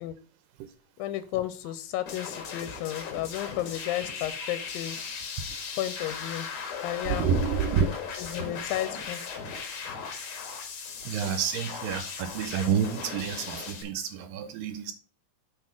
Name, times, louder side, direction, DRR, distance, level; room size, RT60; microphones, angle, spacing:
voice 1, 1.0-5.0 5.8-6.5 6.8-7.3 8.2-9.2, left 13 dB, 90° left, 2.4 m, -33 dB
sound 1, 2.1-13.8, left 6 dB, 65° left, 3.0 m, -37 dB
voice 2, 7.1-7.9 8.4-8.5 11.0-14.9, right 7 dB, 80° right, 2.2 m, -29 dB
7.6 x 3.8 x 6.3 m
omnidirectional pair, 4.1 m